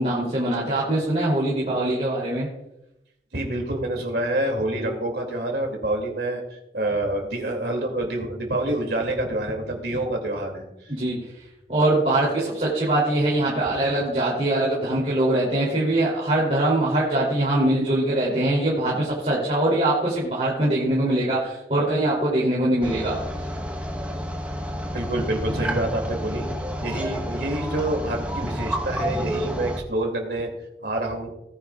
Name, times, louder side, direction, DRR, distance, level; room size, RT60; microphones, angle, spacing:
voice 1, 0.0-2.5 10.9-11.1 11.7-23.1, right 1 dB, 40° right, -6 dB, 3.0 m, -22 dB
voice 2, 3.3-10.9 24.9-26.5 26.8-30.5 30.8-31.3, right 1 dB, 70° right, 2 dB, 2.5 m, -27 dB
sound 1, 22.8-29.8, equal, 10° right, 1.1 m, -30 dB
18.5 x 9.9 x 2.4 m, 0.89 s
head